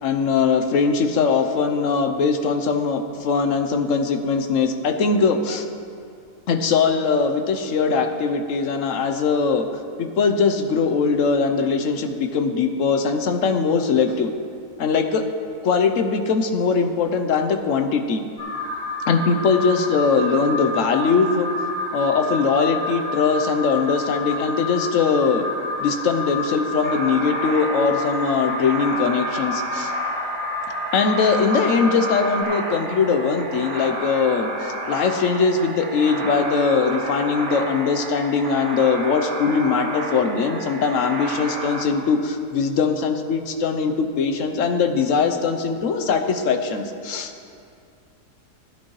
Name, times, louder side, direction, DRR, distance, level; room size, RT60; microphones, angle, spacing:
voice 1, 0.0-5.7 6.5-9.6 10.0-14.3 14.8-15.2 15.6-18.2 19.1-21.5 21.9-25.5 25.8-29.9 30.9-47.3, left 5 dB, 65° left, 7 dB, 0.9 m, -21 dB
Alarm, 18.4-32.4, left 2 dB, 15° right, 3.1 m, -29 dB
sound 1, 26.8-41.8, right 2 dB, 70° right, 1.6 m, -31 dB
16.0 x 10.0 x 3.1 m, 2.4 s
omnidirectional pair, 1.7 m